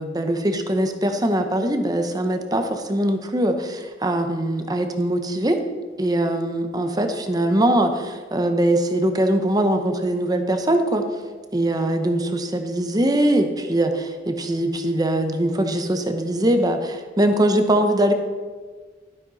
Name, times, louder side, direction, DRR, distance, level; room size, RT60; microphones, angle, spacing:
voice 1, 0.0-5.6 6.0-11.1 11.5-18.1, right 1 dB, 20° right, 6 dB, 0.8 m, -22 dB
12.5 x 12.0 x 4.1 m, 1.5 s
head